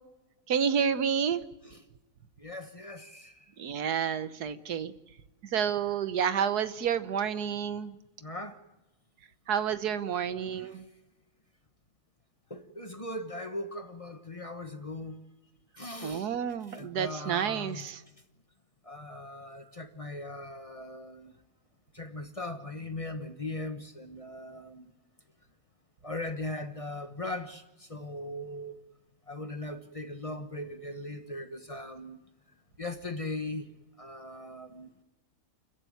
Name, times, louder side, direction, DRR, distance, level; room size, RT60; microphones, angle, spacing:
voice 1, 0.5-1.4 3.6-4.9 5.5-7.9 9.5-10.8 16.0-18.0, right 7 dB, 85° right, 12 dB, 1.6 m, -29 dB
voice 2, 2.4-3.3 8.2-8.6 12.5-15.2 15.8-16.3 16.7-17.9 18.9-21.3 21.9-24.9 26.0-27.6 27.9-28.8 29.3-32.2 32.8-33.7 34.0-34.9, left 2 dB, 25° left, 8 dB, 1.1 m, -39 dB
29.5 x 14.5 x 9.3 m, 1.1 s
omnidirectional pair, 1.6 m